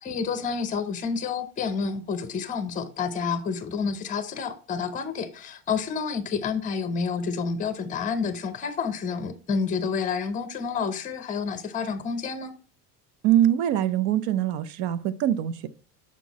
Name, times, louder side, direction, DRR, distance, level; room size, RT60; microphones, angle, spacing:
voice 1, 0.0-12.5, left 5 dB, 15° left, 0.6 m, -29 dB
voice 2, 13.2-15.7, right 11 dB, 65° right, 0.7 m, -23 dB
6.0 x 4.5 x 4.0 m
cardioid pair, 150°, 48 cm